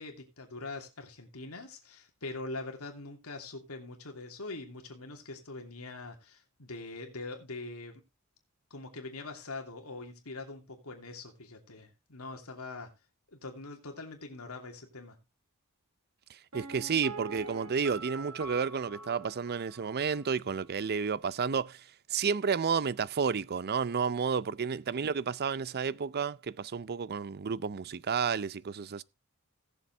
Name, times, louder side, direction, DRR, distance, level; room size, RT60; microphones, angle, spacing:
voice 1, 0.0-8.0 8.7-12.9 13.3-15.2, left 3 dB, 90° left, 2.8 m, -43 dB
voice 2, 16.5-21.8 22.1-29.0, right 6 dB, 45° right, 0.5 m, -31 dB
Piano, 16.5-20.3 20.5-20.6, right 3 dB, 75° right, 2.9 m, -44 dB
18.0 x 7.2 x 3.4 m
head